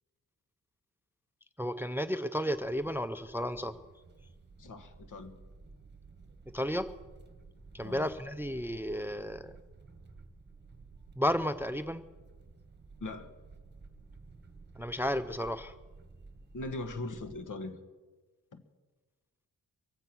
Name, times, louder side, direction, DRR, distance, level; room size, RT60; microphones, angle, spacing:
voice 1, 1.6-3.7 6.5-6.9 7.7-9.6 11.2-12.0 14.8-15.7, equal, 5° right, 13 dB, 0.5 m, -33 dB
sound 1, 2.5-17.4, right 3 dB, 30° right, 1.3 m, -54 dB
voice 2, 4.6-5.4 7.8-8.1 13.0-13.3 16.5-17.8 18.5-18.6, left 2 dB, 60° left, 8 dB, 1.5 m, -40 dB
23.5 x 8.4 x 6.0 m, 1.3 s
wide cardioid pair, 115°, 35 cm